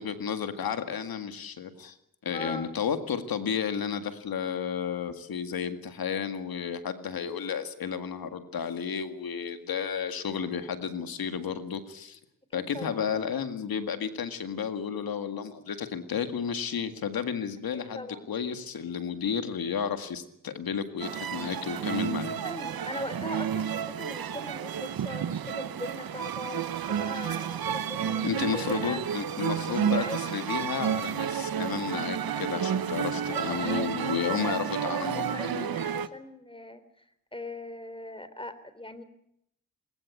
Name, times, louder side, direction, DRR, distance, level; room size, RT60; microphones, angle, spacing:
voice 1, 0.0-2.0 2.2-12.2 12.5-22.4 28.2-35.7, left 7 dB, 90° left, 9 dB, 2.0 m, -32 dB
voice 2, 2.3-2.7 12.5-13.0 17.7-18.3 22.4-29.0 29.6-30.3 33.3-34.4 34.8-36.8 37.3-39.0, left 1 dB, 15° left, 12 dB, 3.5 m, -40 dB
sound 1, 21.0-36.1, right 8 dB, 90° right, 1.1 m, -31 dB
20.5 x 20.0 x 8.5 m, 0.75 s
cardioid pair, 45°, 35 cm